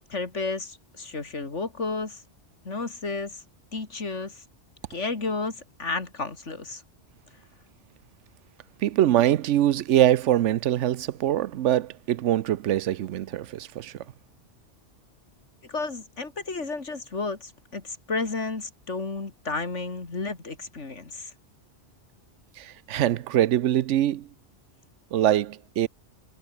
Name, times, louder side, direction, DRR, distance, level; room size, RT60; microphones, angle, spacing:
voice 1, 0.1-2.2 2.6-3.4 3.7-4.4 4.9-6.8 15.6-21.3, left 3 dB, 90° left, 3.2 m, -32 dB
voice 2, 8.8-13.9 22.6-24.3 25.1-25.9, right 12 dB, 85° right, 1.0 m, -23 dB
omnidirectional pair, 1.2 m